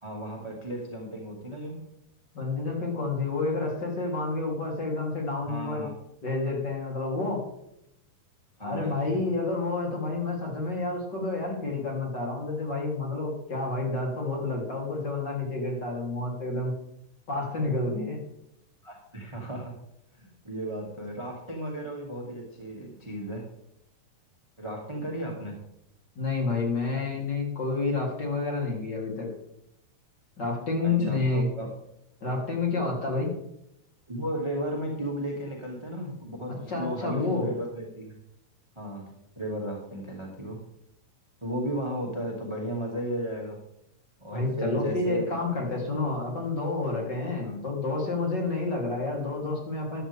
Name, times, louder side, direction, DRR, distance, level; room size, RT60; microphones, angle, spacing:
voice 1, 0.0-1.8 5.4-5.9 8.6-9.2 18.8-19.7 20.1-23.4 24.6-25.6 30.8-31.7 34.1-38.2 38.8-40.6 41.4-43.6 44.2-45.5 47.4-47.6, right 1 dB, 10° right, -1 dB, 2.0 m, -34 dB
voice 2, 2.3-5.9 6.2-7.4 8.6-16.7 17.3-18.2 26.2-29.3 30.4-31.5 32.2-33.3 36.7-37.5 44.3-50.0, left 3 dB, 35° left, -1 dB, 3.9 m, -29 dB
14.5 x 12.0 x 3.6 m, 0.80 s
omnidirectional pair, 3.7 m